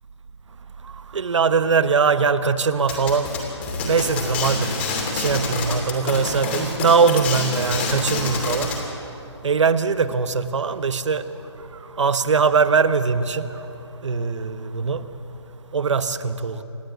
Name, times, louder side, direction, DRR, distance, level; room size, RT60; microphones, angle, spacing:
voice 1, 1.1-3.3 3.8-4.7 5.1-8.7 9.4-11.2 12.0-13.5 14.0-15.0 15.7-16.6, right 5 dB, 75° right, 11 dB, 1.2 m, -21 dB
sound 1, 2.9-8.8, left 3 dB, 25° left, 2.8 m, -27 dB
27.5 x 10.5 x 9.3 m, 3.0 s
hypercardioid pair, 175°, 15 cm